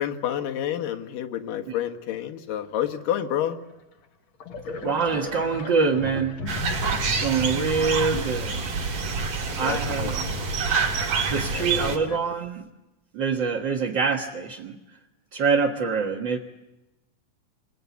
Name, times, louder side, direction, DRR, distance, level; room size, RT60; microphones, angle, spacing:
voice 1, 0.0-3.6 9.4-10.4 11.5-11.7 12.1-12.2, left 10 dB, 90° left, 5 dB, 3.0 m, -29 dB
sound 1, 3.7-3.8 4.4-8.6, left 3 dB, 55° left, 1.5 m, -36 dB
voice 2, 4.8-6.4 7.2-8.7 9.6-10.3 11.3-12.7 13.1-14.8 15.3-16.4, right 5 dB, 50° right, -1 dB, 1.4 m, -25 dB
sound 2, 6.5-12.0, right 4 dB, 75° right, 4.4 m, -27 dB
27.5 x 22.0 x 8.4 m, 0.97 s
omnidirectional pair, 3.7 m